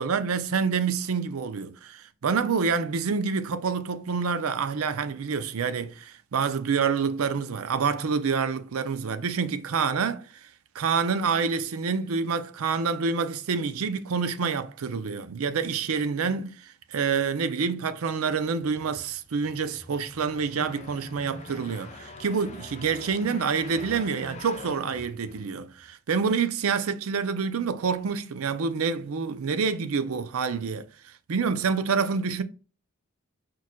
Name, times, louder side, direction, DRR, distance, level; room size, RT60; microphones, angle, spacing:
voice 1, 0.0-10.5 10.7-30.9 31.3-32.4, right 5 dB, 80° right, 0.5 m, -27 dB
sound 1, 18.6-25.9, left 2 dB, 30° left, 0.7 m, -45 dB
4.7 x 4.6 x 2.2 m
head